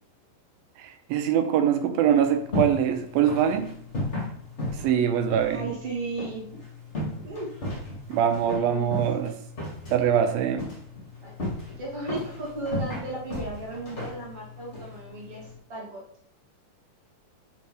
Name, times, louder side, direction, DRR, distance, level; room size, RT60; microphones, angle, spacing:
voice 1, 0.8-3.7 4.8-5.7 8.1-9.4 9.9-10.7, right 9 dB, 85° right, 6 dB, 2.7 m, -23 dB
sound 1, 2.1-15.5, left 1 dB, 20° left, 2.3 m, -35 dB
voice 2, 5.4-6.5 7.2-7.5 8.5-9.0 11.2-11.3 11.8-16.0, right 2 dB, 45° right, -3 dB, 2.7 m, -35 dB
7.0 x 5.9 x 4.9 m, 0.65 s
omnidirectional pair, 4.1 m